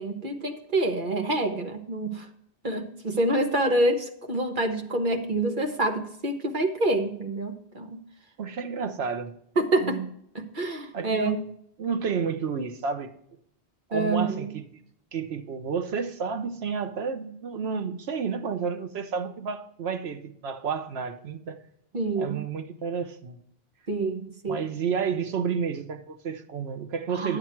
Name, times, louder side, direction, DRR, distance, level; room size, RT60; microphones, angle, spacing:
voice 1, 0.0-2.3 2.6-8.0 9.6-10.0 10.3-11.3 13.9-14.5 21.9-22.4 23.9-24.6 27.1-27.4, right 2 dB, 55° right, 1.3 m, -27 dB
voice 2, 8.4-9.3 9.8-10.1 10.9-11.5 11.8-13.1 13.9-14.6 15.1-21.6 22.2-23.4 24.5-27.4, right 6 dB, 85° right, 1.1 m, -31 dB
10.5 x 8.0 x 4.5 m
omnidirectional pair, 1.0 m